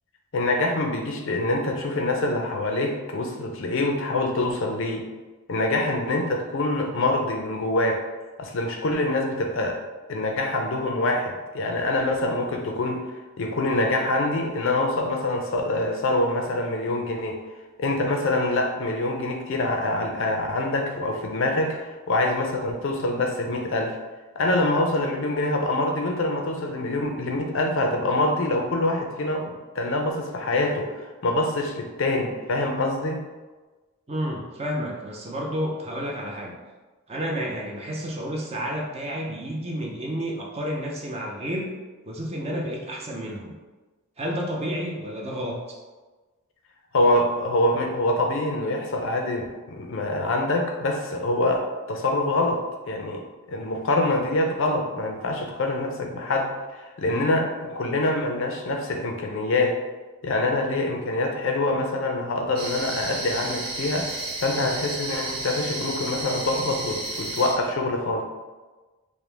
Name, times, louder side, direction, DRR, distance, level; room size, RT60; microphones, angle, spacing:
voice 1, 0.3-5.1 5.5-8.0 8.4-13.0 13.4-17.4 17.8-24.0 24.4-33.2 46.9-52.6 52.9-53.2 53.5-59.8 60.2-68.2, left 2 dB, 60° left, 3 dB, 0.5 m, -25 dB
voice 2, 34.1-36.5 37.1-41.7 42.0-43.6 44.2-45.8, equal, 30° right, -1 dB, 0.6 m, -30 dB
sound 1, 62.5-67.5, right 2 dB, 80° right, 1.0 m, -32 dB
5.0 x 2.1 x 3.3 m, 1.3 s
head